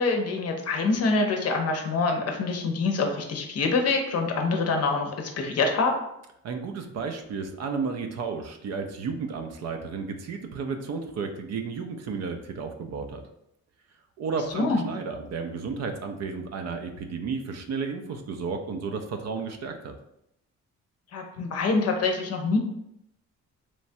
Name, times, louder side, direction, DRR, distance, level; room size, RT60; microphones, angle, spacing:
voice 1, 0.0-6.0 14.5-14.8 21.1-22.6, left 3 dB, 55° left, 3 dB, 0.6 m, -25 dB
voice 2, 6.4-13.2 14.2-19.9, right 5 dB, 60° right, 5 dB, 0.5 m, -33 dB
3.1 x 2.2 x 2.6 m, 0.79 s
cardioid pair, 90°, 30 cm